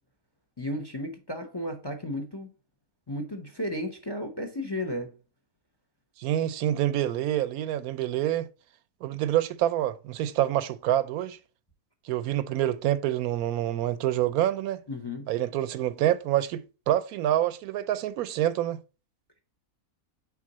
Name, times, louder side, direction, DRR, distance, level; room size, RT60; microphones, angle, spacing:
voice 1, 0.6-2.5 3.1-5.1 14.9-15.3, left 1 dB, 25° left, 0.7 m, -34 dB
voice 2, 6.2-8.5 9.0-11.4 12.0-14.8 15.3-18.8, right 12 dB, 80° right, 1.0 m, -27 dB
6.0 x 4.5 x 3.9 m
omnidirectional pair, 1.5 m